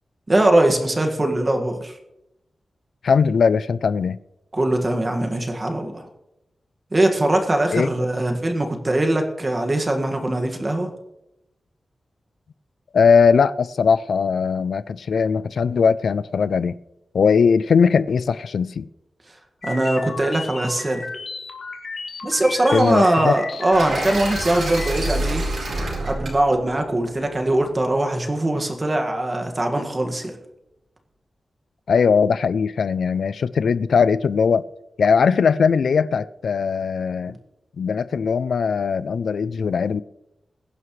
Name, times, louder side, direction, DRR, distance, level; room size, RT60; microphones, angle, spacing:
voice 1, 0.3-2.0 4.5-6.1 6.9-10.9 19.3-19.4 19.6-21.1 22.2-25.4 26.0-30.3, right 1 dB, 25° right, 1.8 m, -21 dB
voice 2, 3.0-4.2 7.7-7.9 12.9-16.8 17.1-18.9 22.7-23.3 31.9-34.6 35.0-37.3 37.8-40.0, left 6 dB, 80° left, 0.4 m, -19 dB
sound 1, 19.6-25.1, left 4 dB, 60° left, 1.9 m, -34 dB
sound 2, 23.7-27.8, right 1 dB, 70° right, 4.4 m, -28 dB
21.5 x 11.0 x 3.2 m
wide cardioid pair, 160°, 0 cm